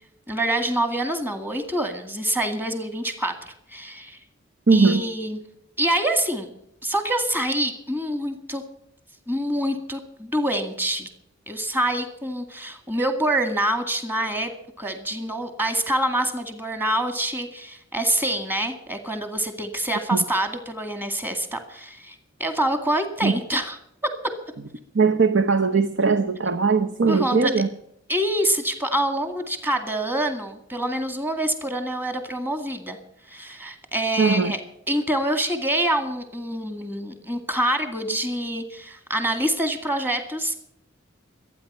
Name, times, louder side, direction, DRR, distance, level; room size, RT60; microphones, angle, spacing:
voice 1, 0.3-4.2 4.7-5.4 5.8-6.5 6.8-8.6 9.3-11.1 11.5-14.5 14.8-23.8 27.1-27.5 28.1-33.0 33.3-34.6 34.9-40.6, right 1 dB, 10° right, 7 dB, 2.1 m, -26 dB
voice 2, 4.7-5.0 20.1-20.2 23.2-23.3 24.9-27.7 34.2-34.5, right 4 dB, 60° right, 7 dB, 0.9 m, -19 dB
24.5 x 9.5 x 5.6 m, 0.75 s
head